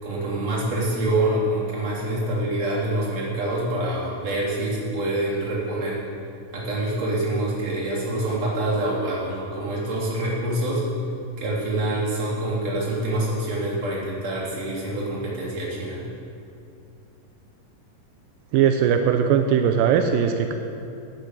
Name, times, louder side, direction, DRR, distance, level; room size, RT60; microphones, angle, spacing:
voice 1, 0.0-6.0 6.5-10.8 11.4-16.0, right 1 dB, 50° right, -7 dB, 4.6 m, -26 dB
voice 2, 18.5-20.5, right 8 dB, 90° right, 6 dB, 2.4 m, -19 dB
13.5 x 8.4 x 8.4 m, 2.6 s
omnidirectional pair, 3.9 m